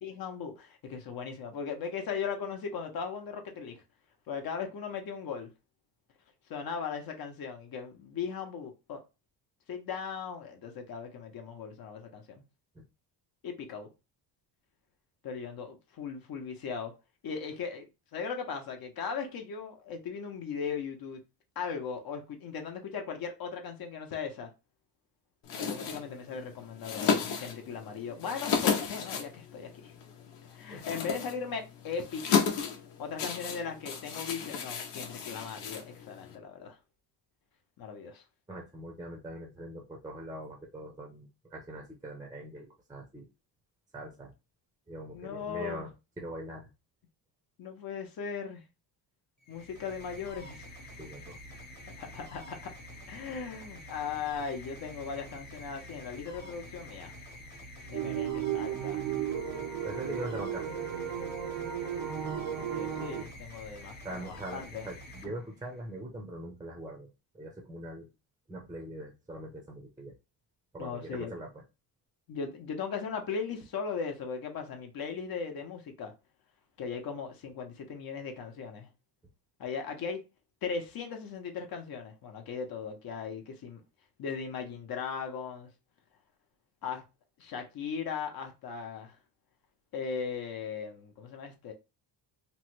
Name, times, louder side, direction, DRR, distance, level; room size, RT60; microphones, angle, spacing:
voice 1, 0.0-3.8 4.3-5.5 6.5-9.0 9.7-12.4 13.4-13.9 15.2-16.9 17.2-21.2 21.6-24.5 25.6-29.9 30.5-32.2 33.0-36.8 37.8-38.2 45.1-45.9 47.6-48.6 49.5-50.7 52.0-52.7 53.1-57.1 57.9-59.0 60.0-60.2 62.6-64.9 70.8-71.3 72.3-76.1 76.8-78.9 79.6-80.2 80.6-83.8 84.2-85.7 86.8-87.0 87.4-89.2 89.9-91.7, left 6 dB, 55° left, 0.8 m, -38 dB
sound 1, 25.4-36.4, left 6 dB, 85° left, 0.8 m, -34 dB
voice 2, 38.5-43.3 43.9-44.3 44.9-45.9 46.2-46.7 51.0-51.4 59.8-60.6 64.0-68.1 68.5-70.1 70.7-71.6, right 1 dB, 10° right, 0.6 m, -42 dB
sound 2, 49.4-65.9, left 1 dB, 25° left, 0.9 m, -48 dB
sound 3, 57.9-63.2, right 9 dB, 90° right, 0.8 m, -34 dB
3.1 x 2.1 x 3.0 m
cardioid pair, 130°, 43 cm